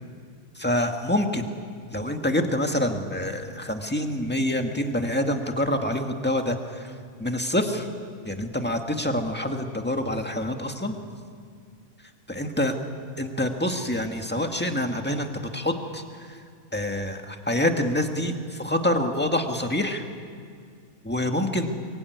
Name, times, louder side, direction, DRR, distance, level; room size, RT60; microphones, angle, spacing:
voice 1, 0.6-1.5 1.9-6.9 7.2-7.9 8.2-11.0 12.3-12.7 13.2-16.0 16.7-20.0 21.0-21.7, left 1 dB, 5° left, 4 dB, 1.8 m, -26 dB
23.5 x 23.0 x 9.5 m, 2.2 s
omnidirectional pair, 1.5 m